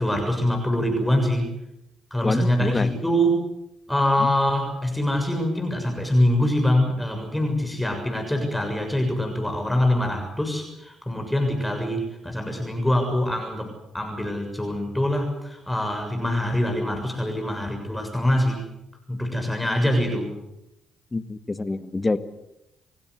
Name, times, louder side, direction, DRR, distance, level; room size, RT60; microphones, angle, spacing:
voice 1, 0.0-1.5 2.1-3.4 3.9-18.6 19.1-20.4, left 1 dB, 5° left, 3 dB, 6.9 m, -24 dB
voice 2, 2.2-2.9 21.1-22.2, left 3 dB, 25° left, 11 dB, 1.9 m, -26 dB
29.5 x 16.5 x 8.2 m, 0.85 s
hypercardioid pair, 50°, 0 cm